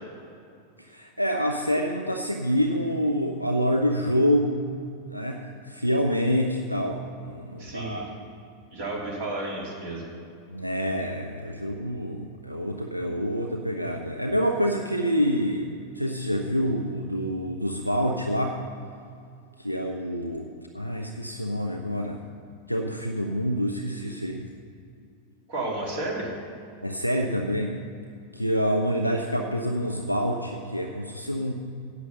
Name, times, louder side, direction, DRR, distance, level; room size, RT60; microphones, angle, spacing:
voice 1, 0.8-4.7 5.1-8.1 10.5-15.7 15.9-18.6 19.6-22.2 22.7-24.5 26.8-27.8 28.3-31.5, equal, 90° right, 1 dB, 0.7 m, -27 dB
voice 2, 7.6-8.1 8.7-10.1 25.5-26.3, right 2 dB, 50° right, -2 dB, 3.2 m, -32 dB
11.0 x 8.2 x 6.8 m, 2.4 s
figure-of-eight pair, 90°, 0 cm